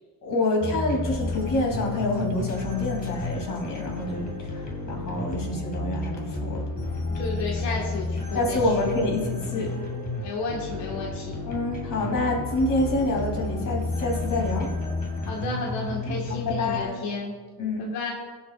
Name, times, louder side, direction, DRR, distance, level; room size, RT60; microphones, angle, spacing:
voice 1, 0.2-6.6 8.3-9.7 11.5-14.7 16.0-16.1 16.5-17.0 17.6-17.8, left 2 dB, 50° left, 0 dB, 3.1 m, -27 dB
sound 1, 0.6-16.8, left 2 dB, 20° left, 2.1 m, -31 dB
voice 2, 7.2-8.9 10.2-11.4 15.2-17.3 17.8-18.1, left 3 dB, 90° left, -2 dB, 1.8 m, -32 dB
19.5 x 7.5 x 2.5 m, 1.4 s
cardioid pair, 140°, 40 cm